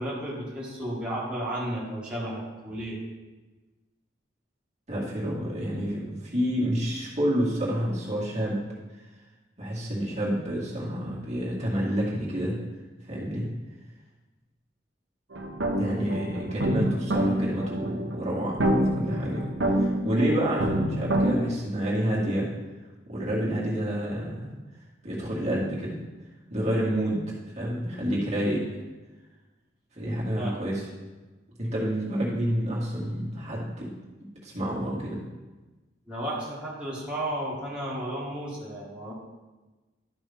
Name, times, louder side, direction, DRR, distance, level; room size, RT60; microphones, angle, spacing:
voice 1, 0.0-3.0 30.4-30.7 36.1-39.1, right 1 dB, 5° right, -8 dB, 1.9 m, -33 dB
voice 2, 4.9-8.6 9.6-12.6 13.1-13.5 15.8-18.6 18.9-19.4 19.8-22.5 23.1-24.5 25.0-25.9 26.5-27.2 27.5-28.6 30.0-30.8 31.6-33.9 34.4-35.2, equal, 35° right, -6 dB, 2.1 m, -28 dB
sound 1, 15.3-21.3, right 1 dB, 75° right, 1.1 m, -27 dB
12.0 x 5.4 x 3.6 m, 1.2 s
head